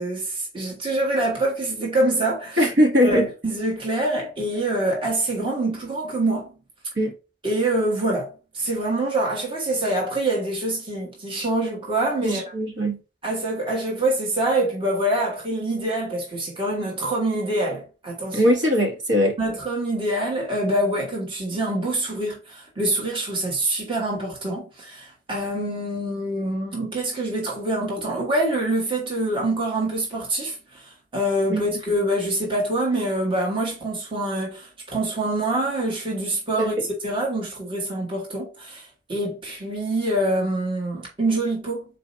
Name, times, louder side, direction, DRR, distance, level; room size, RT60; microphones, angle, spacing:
voice 1, 0.0-2.7 3.0-6.5 7.4-8.3 8.5-12.4 13.2-18.4 19.4-41.9, right 1 dB, 30° right, 1.3 m, -25 dB
voice 2, 2.6-3.3 7.0-7.1 12.2-13.0 18.3-19.4 31.5-31.6 36.6-36.7, equal, 80° right, 1.4 m, -20 dB
4.2 x 2.8 x 3.9 m
head